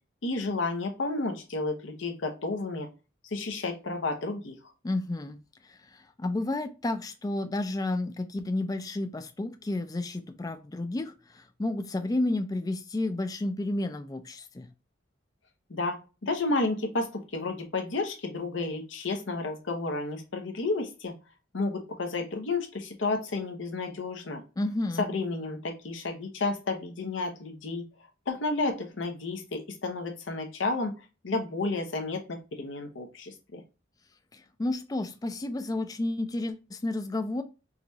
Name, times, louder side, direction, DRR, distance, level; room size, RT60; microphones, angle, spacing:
voice 1, 0.2-2.9 3.3-4.6 15.7-16.0 16.2-21.1 21.5-24.4 25.0-27.9 28.3-30.9 31.2-33.6, left 3 dB, 75° left, 0.8 m, -31 dB
voice 2, 4.8-5.4 5.7-14.7 24.6-25.1 34.3-37.4, left 2 dB, 20° left, 0.4 m, -31 dB
4.8 x 2.3 x 2.6 m
head